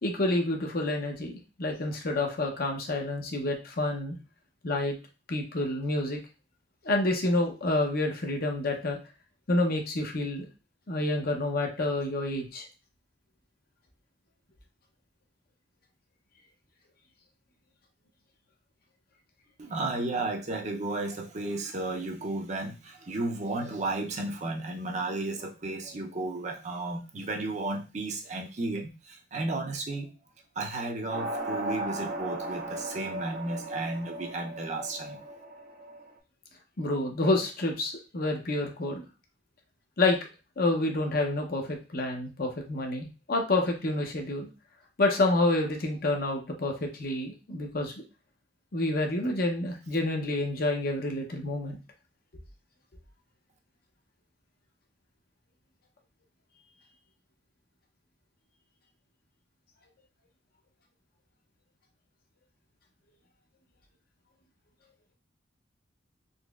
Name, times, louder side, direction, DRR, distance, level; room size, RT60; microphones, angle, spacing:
voice 1, 0.0-4.2 4.6-5.0 5.3-6.2 6.8-9.0 9.5-10.5 10.9-12.7 36.8-39.0 40.0-40.2 40.6-44.5 45.0-47.9 48.7-51.8, left 2 dB, 50° left, 3 dB, 0.7 m, -28 dB
voice 2, 19.6-30.1 30.6-35.2, right 2 dB, 35° right, 2 dB, 0.6 m, -33 dB
sound 1, 31.1-36.1, right 2 dB, 60° right, 0.9 m, -36 dB
4.0 x 2.9 x 2.3 m, 0.31 s
head